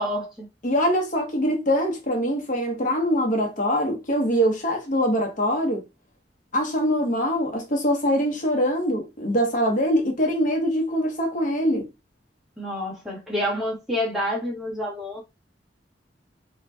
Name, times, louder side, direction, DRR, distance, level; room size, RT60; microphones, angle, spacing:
voice 1, 0.0-0.5 12.6-15.2, left 1 dB, ahead, 1.0 m, -28 dB
voice 2, 0.6-5.9 6.5-11.9, equal, 50° left, 0.8 m, -23 dB
2.6 x 2.1 x 3.3 m
head